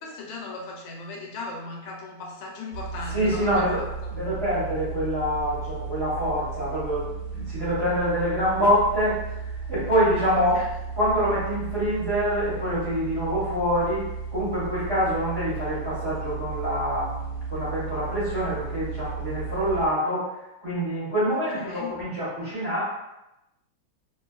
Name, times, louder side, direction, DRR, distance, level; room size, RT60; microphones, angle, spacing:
voice 1, 0.0-4.1 10.5-10.7 21.3-21.9, left 3 dB, 85° left, 0 dB, 1.4 m, -37 dB
sound 1, 2.7-19.9, right 5 dB, 75° right, 1.1 m, -34 dB
voice 2, 3.0-10.6 10.9-20.3 20.6-22.8, equal, 45° right, -10 dB, 0.9 m, -26 dB
2.9 x 2.5 x 2.3 m, 0.91 s
omnidirectional pair, 2.1 m